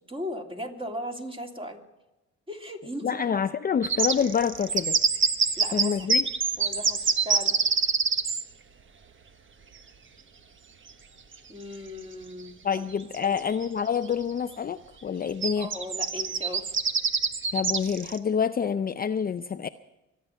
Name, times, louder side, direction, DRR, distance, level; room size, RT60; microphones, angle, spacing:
voice 1, 0.1-1.8 2.5-3.4 5.6-6.0 6.6-7.6 11.5-12.5 13.2-13.5 15.6-16.8, equal, 20° right, 2 dB, 3.0 m, -37 dB
voice 2, 3.0-5.0 5.7-6.3 12.6-15.7 17.5-19.7, left 7 dB, 30° left, 10 dB, 0.5 m, -27 dB
sound 1, 3.8-8.4 10.9-11.0 11.3-11.4 12.7-12.8 13.1-13.6 14.1-14.3 15.4-18.2, right 5 dB, 40° right, 1.3 m, -25 dB
24.5 x 9.5 x 5.6 m, 1.0 s
cardioid pair, 90°, 30 cm